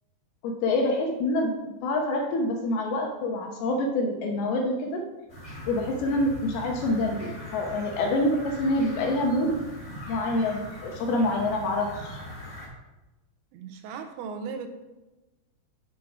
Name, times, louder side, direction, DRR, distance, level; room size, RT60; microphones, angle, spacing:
voice 1, 0.4-5.0 5.7-9.6 10.1-12.2, left 1 dB, 75° left, 1 dB, 2.4 m, -26 dB
sound 1, 5.3-12.7, left 1 dB, 50° left, 0.5 m, -41 dB
voice 2, 13.5-14.7, right 5 dB, 90° right, 6 dB, 3.0 m, -37 dB
7.3 x 6.2 x 5.9 m, 1.1 s
omnidirectional pair, 5.2 m